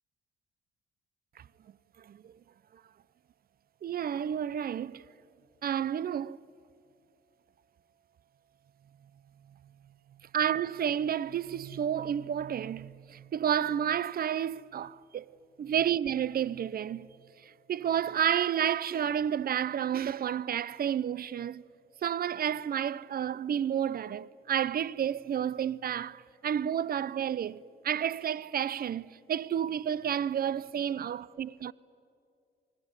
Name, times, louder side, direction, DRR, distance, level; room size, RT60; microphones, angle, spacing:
voice 1, 3.8-5.0 5.6-6.4 10.3-17.1 17.4-21.6 22.0-31.7, right 9 dB, 50° right, 0.7 m, -31 dB
28.0 x 21.0 x 9.7 m
cardioid pair, 90°, 20 cm